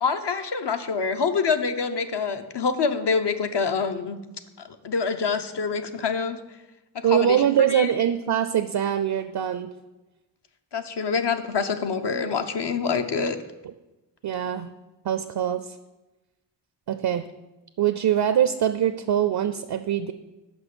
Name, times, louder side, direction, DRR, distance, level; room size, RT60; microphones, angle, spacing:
voice 1, 0.0-4.2 4.6-6.4 7.1-7.9 10.7-13.4, left 5 dB, 65° left, 7 dB, 0.8 m, -26 dB
voice 2, 7.0-9.7 14.2-14.7 15.0-15.8 16.9-17.3 17.8-20.1, right 10 dB, 60° right, 11 dB, 0.5 m, -23 dB
6.2 x 5.4 x 6.9 m, 1.1 s
cardioid pair, 45°, 44 cm